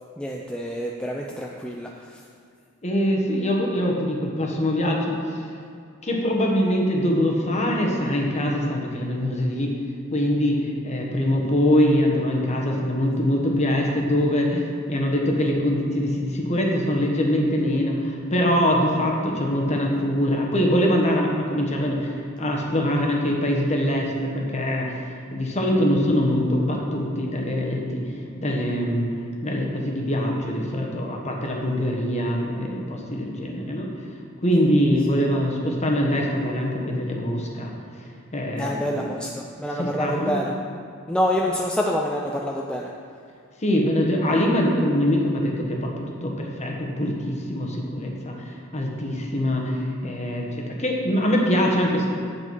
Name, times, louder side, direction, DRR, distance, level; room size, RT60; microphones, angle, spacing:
voice 1, 0.2-1.9 38.6-40.5 41.1-42.9, equal, 5° left, -1 dB, 0.4 m, -26 dB
voice 2, 2.8-5.4 6.0-9.7 10.1-29.1 29.4-33.9 34.4-38.0 38.3-39.1 39.8-40.4 43.6-45.9 46.2-52.1, equal, 35° left, -1 dB, 1.3 m, -23 dB
8.4 x 8.1 x 4.6 m, 2.3 s
head